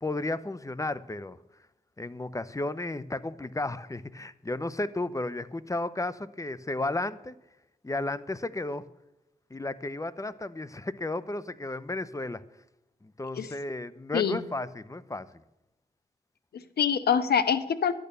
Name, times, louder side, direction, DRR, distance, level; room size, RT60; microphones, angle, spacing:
voice 1, 0.0-1.4 2.0-7.4 7.8-8.9 9.5-12.4 13.0-15.4, left 2 dB, 20° left, 16 dB, 0.8 m, -33 dB
voice 2, 16.5-17.9, left 7 dB, 85° left, 13 dB, 0.9 m, -25 dB
11.5 x 8.9 x 6.8 m, 0.93 s
cardioid pair, 55°, 16 cm